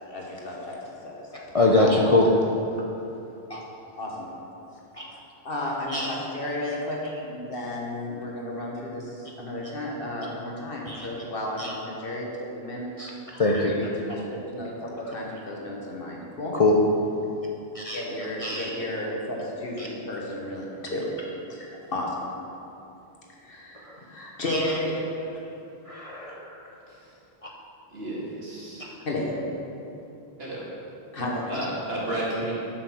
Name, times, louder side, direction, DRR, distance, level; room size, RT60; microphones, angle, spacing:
voice 1, 0.1-0.8 1.0-1.5 1.8-1.9 4.0-4.3 5.4-12.9 13.7-16.6 17.9-20.6 20.9-21.0 21.5-22.3 23.3-25.0 29.0-29.4 31.1-31.6, left 1 dB, 60° left, -2 dB, 1.6 m, -33 dB
voice 2, 1.5-2.3 3.5-3.6 5.0-5.1 5.9-6.2 10.9-11.1 11.6-11.7 13.0-13.8 16.5-16.7 17.7-18.0 18.4-18.7 19.8-19.9 23.9-24.0 24.5-24.6 25.9-26.6, left 2 dB, 40° left, -2 dB, 0.6 m, -23 dB
voice 3, 27.9-28.8 30.4-30.7 31.5-32.5, right 1 dB, 70° right, -7 dB, 2.4 m, -32 dB
8.0 x 6.3 x 6.1 m, 2.8 s
omnidirectional pair, 1.1 m